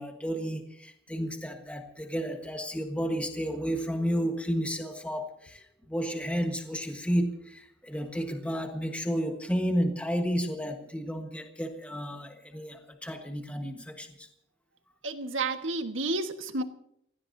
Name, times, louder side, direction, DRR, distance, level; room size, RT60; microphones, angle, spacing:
voice 1, 0.0-14.3, equal, 5° left, 4 dB, 1.4 m, -32 dB
voice 2, 15.0-16.6, right 3 dB, 80° right, 7 dB, 1.5 m, -31 dB
28.5 x 17.0 x 2.7 m, 0.72 s
head